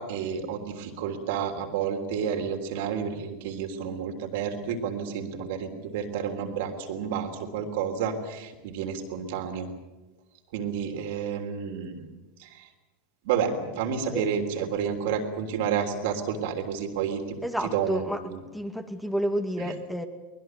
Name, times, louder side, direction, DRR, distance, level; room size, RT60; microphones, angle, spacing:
voice 1, 0.0-9.7 10.5-12.1 12.4-12.7 13.2-18.4 19.6-19.7, right 7 dB, 65° right, 4 dB, 3.4 m, -30 dB
voice 2, 17.4-18.2 18.5-20.0, equal, ahead, 6 dB, 2.2 m, -30 dB
23.5 x 20.5 x 8.0 m, 1.1 s
hypercardioid pair, 85°, 0 cm